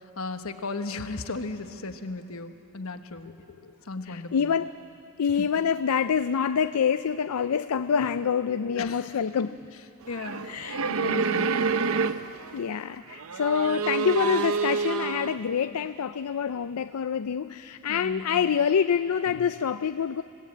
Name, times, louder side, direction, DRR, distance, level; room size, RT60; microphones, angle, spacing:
voice 1, 0.2-4.5 5.4-5.5 8.8-9.1 9.4-9.5 10.1-10.5 10.9-11.5 15.6-15.8 17.9-18.5, left 3 dB, 70° left, 7 dB, 1.2 m, -36 dB
voice 2, 4.1-4.7 5.2-9.6 10.5-10.8 12.5-20.2, left 7 dB, 85° left, 12 dB, 0.4 m, -26 dB
sound 1, 10.1-12.6 13.1-15.4, right 5 dB, 70° right, 0.6 m, -28 dB
28.5 x 17.5 x 8.7 m, 2.9 s
head